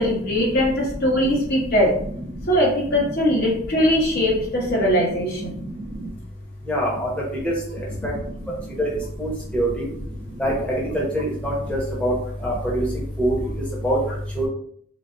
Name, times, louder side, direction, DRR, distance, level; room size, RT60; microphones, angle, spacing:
voice 1, 0.0-1.9 2.5-5.5, equal, 45° left, -2 dB, 0.9 m, -20 dB
voice 2, 6.7-7.1 7.4-7.5 8.8-8.9 9.2-9.3 9.5-9.9 10.4-12.1 12.4-12.8 13.2-13.3 13.8-14.0 14.4-14.5, equal, 5° left, -5 dB, 0.9 m, -23 dB
4.0 x 2.3 x 3.4 m, 0.62 s
head